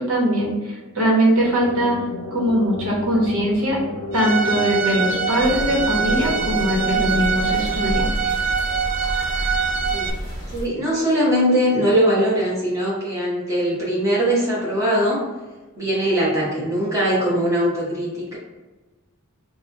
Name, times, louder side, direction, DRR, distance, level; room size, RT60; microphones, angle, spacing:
voice 1, 0.0-2.0 2.3-3.7 4.1-8.3, equal, 70° right, -3 dB, 1.0 m, -21 dB
sound 1, 1.2-8.8, left 1 dB, 65° left, 0.5 m, -33 dB
Bowed string instrument, 4.1-10.1, right 6 dB, 35° right, 0.3 m, -24 dB
sound 2, 5.4-10.6, equal, 15° left, 1.0 m, -30 dB
voice 2, 10.5-15.2 15.8-18.4, equal, 15° right, -7 dB, 1.0 m, -21 dB
3.2 x 2.2 x 3.9 m, 1.2 s
head